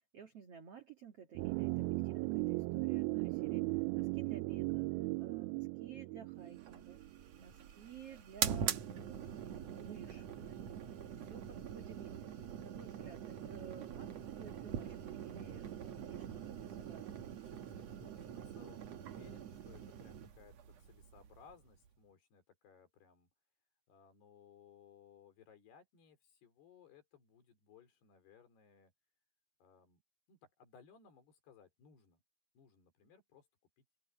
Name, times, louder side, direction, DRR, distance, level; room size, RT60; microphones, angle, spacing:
voice 1, 0.1-4.9 5.2-7.0 7.4-16.3 16.5-17.3, right 7 dB, 50° right, 2.0 m, -54 dB
sound 1, 1.3-7.4 7.6-7.7, right 23 dB, 90° right, 2.1 m, -37 dB
voice 2, 5.2-5.6 7.0-7.4 13.1-13.3 17.4-23.3 23.9-28.9 29.6-30.0 30.3-32.2 32.6-33.5 33.8-33.9, left 7 dB, 65° left, 6.0 m, -63 dB
sound 2, 6.6-21.9, right 9 dB, 70° right, 1.6 m, -43 dB
open air
omnidirectional pair, 5.1 m